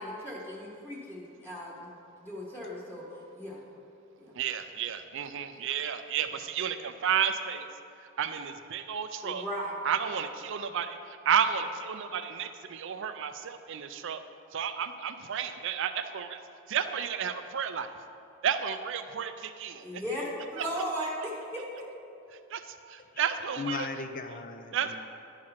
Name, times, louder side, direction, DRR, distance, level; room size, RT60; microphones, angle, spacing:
voice 1, 0.0-1.9 2.2-3.0 3.3-3.6 4.2-4.3 9.2-9.7 19.8-21.6, equal, 10° left, -5 dB, 1.3 m, -36 dB
voice 2, 4.3-7.7 8.2-9.4 9.8-14.2 14.5-16.4 16.7-17.9 18.4-20.0 20.6-20.7 22.5-23.9 24.7-25.0, right 8 dB, 65° right, 9 dB, 0.5 m, -32 dB
voice 3, 23.6-25.0, left 4 dB, 45° left, 7 dB, 0.6 m, -37 dB
10.5 x 4.8 x 5.7 m, 2.7 s
head